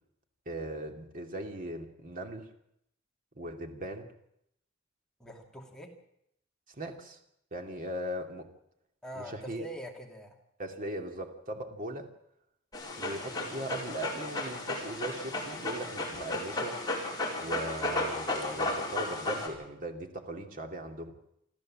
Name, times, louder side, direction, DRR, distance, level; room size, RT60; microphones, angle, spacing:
voice 1, 0.5-2.5 3.4-4.1 6.7-7.2 7.5-8.5 9.1-9.7 10.6-12.1 13.0-16.8 17.4-21.1, right 1 dB, 45° right, 4 dB, 2.5 m, -39 dB
voice 2, 5.2-5.9 9.0-10.3, equal, 5° left, 0 dB, 2.4 m, -44 dB
Dog, 12.7-19.5, left 2 dB, 20° left, 5.0 m, -34 dB
26.5 x 14.0 x 7.5 m, 0.76 s
head